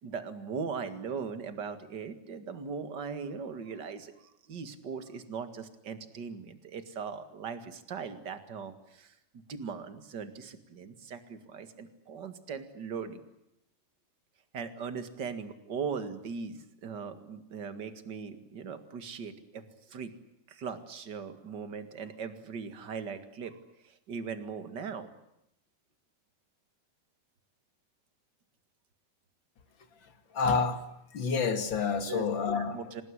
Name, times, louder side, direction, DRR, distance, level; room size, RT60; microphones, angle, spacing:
voice 1, 0.0-9.1 9.5-13.2 14.5-20.1 20.5-25.1 32.1-32.3 32.5-33.0, right 6 dB, 40° right, 10 dB, 1.6 m, -39 dB
voice 2, 30.3-30.8 31.1-32.8, left 5 dB, 40° left, 9 dB, 2.0 m, -28 dB
27.5 x 19.5 x 9.8 m, 0.83 s
omnidirectional pair, 4.7 m